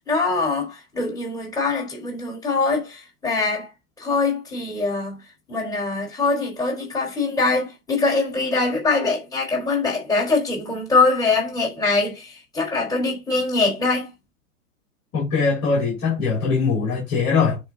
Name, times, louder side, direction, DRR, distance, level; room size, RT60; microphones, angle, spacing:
voice 1, 0.0-3.7 4.0-5.2 5.5-14.1, left 3 dB, 10° left, 4.5 m, -23 dB
voice 2, 15.1-17.6, left 5 dB, 30° left, 3.6 m, -21 dB
10.5 x 3.6 x 3.9 m
hypercardioid pair, 135°, 46 cm